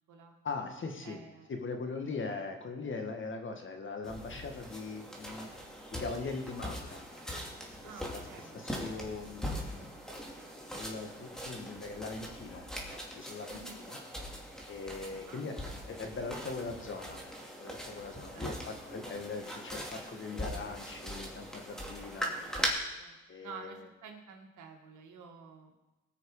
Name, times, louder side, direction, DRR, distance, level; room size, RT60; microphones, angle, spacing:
voice 1, 0.4-1.2 1.5-5.5 5.9-7.0 8.1-8.2 8.5-9.6 10.7-12.6 13.1-13.6 13.9-14.0 14.7-15.5 15.9-17.2 17.6-22.3 23.3-23.9, left 4 dB, 40° left, 4 dB, 2.0 m, -40 dB
voice 2, 1.0-1.5 7.8-8.7 13.4-13.9 15.1-15.4 18.1-18.8 22.1-25.7, right 5 dB, 80° right, 3 dB, 1.9 m, -51 dB
sound 1, 4.0-22.7, equal, ahead, 2.7 m, -41 dB
18.5 x 6.4 x 5.0 m, 1.1 s
cardioid pair, 90°, 30 cm